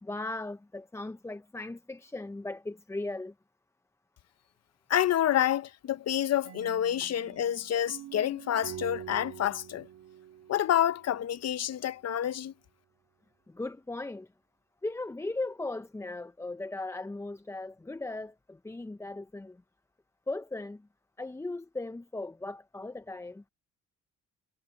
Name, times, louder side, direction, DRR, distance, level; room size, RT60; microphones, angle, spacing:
voice 1, 0.0-3.3 13.5-14.3 14.8-19.6 20.3-20.9 21.2-23.4, left 2 dB, 10° left, 0.6 m, -37 dB
voice 2, 4.9-9.9 10.5-12.5, left 11 dB, 55° left, 0.9 m, -28 dB
sound 1, 6.4-11.3, right 11 dB, 65° right, 2.4 m, -46 dB
cardioid pair, 90°, 30 cm